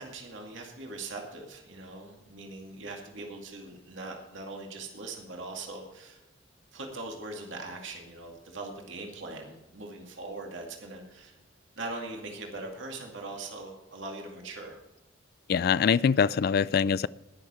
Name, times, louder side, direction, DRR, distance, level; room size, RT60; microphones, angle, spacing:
voice 1, 0.0-6.2 6.7-11.4 11.7-14.8, right 2 dB, 80° right, 1 dB, 2.2 m, -41 dB
voice 2, 15.5-17.1, left 6 dB, 50° left, 20 dB, 0.3 m, -23 dB
20.0 x 6.8 x 4.3 m, 1.0 s
head